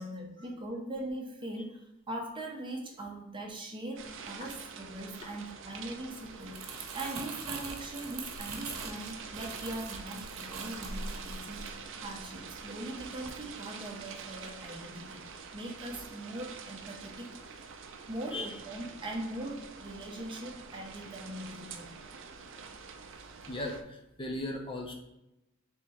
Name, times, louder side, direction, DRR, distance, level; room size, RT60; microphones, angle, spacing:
voice 1, 0.0-17.6 18.1-21.9, right 1 dB, 25° right, 1 dB, 0.7 m, -41 dB
sound 1, 4.0-23.8, right 5 dB, 60° right, 0.4 m, -46 dB
Crumpling crinkling, 6.3-12.6 13.0-13.3, right 4 dB, 90° right, 0.8 m, -42 dB
voice 2, 23.4-24.9, left 1 dB, 25° left, 0 dB, 0.6 m, -37 dB
3.5 x 2.9 x 4.4 m, 0.91 s
head